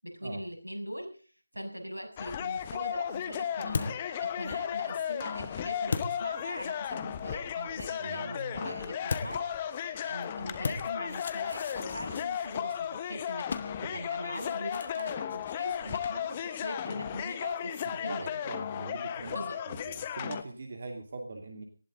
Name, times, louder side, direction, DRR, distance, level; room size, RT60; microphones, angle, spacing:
voice 1, 0.0-1.3 1.5-18.4 19.3-19.6, equal, 85° right, 3 dB, 6.8 m, -41 dB
sound 1, 2.2-20.4, left 9 dB, 20° left, 1.1 m, -35 dB
sound 2, 2.6-7.0 9.1-17.9, left 4 dB, 40° left, 1.6 m, -41 dB
voice 2, 8.0-8.7 13.8-14.0 17.8-19.4 19.7-21.6, right 3 dB, 45° right, 4 dB, 2.5 m, -42 dB
19.0 x 15.0 x 3.9 m, 0.40 s
figure-of-eight pair, 155°, 0 cm